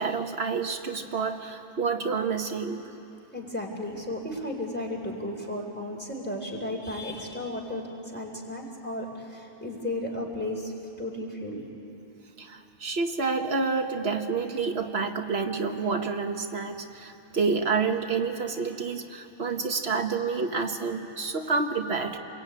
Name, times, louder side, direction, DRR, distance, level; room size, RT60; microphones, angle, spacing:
voice 1, 0.0-2.8 12.4-22.2, right 4 dB, 90° right, 5 dB, 1.6 m, -29 dB
voice 2, 3.3-11.6, left 1 dB, 10° left, 0 dB, 4.1 m, -34 dB
28.0 x 22.0 x 9.1 m, 2.8 s
omnidirectional pair, 1.0 m